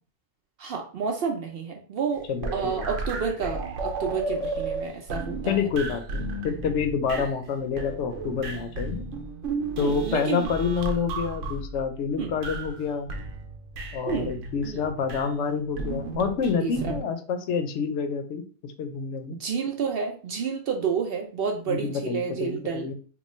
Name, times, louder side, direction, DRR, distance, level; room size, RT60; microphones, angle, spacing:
voice 1, 0.6-5.6 9.8-10.5 12.2-12.4 14.1-14.3 14.6-14.8 16.6-17.0 19.3-22.9, right 6 dB, 60° right, 3 dB, 0.7 m, -30 dB
sound 1, 2.1-7.5 7.8-12.8 13.1-15.3 15.8-17.0, right 3 dB, 85° right, 1.0 m, -33 dB
voice 2, 5.5-9.0 9.8-13.1 13.9-19.4 21.7-22.9, left 6 dB, 75° left, 7 dB, 0.9 m, -28 dB
3.0 x 2.2 x 4.1 m, 0.40 s
omnidirectional pair, 1.3 m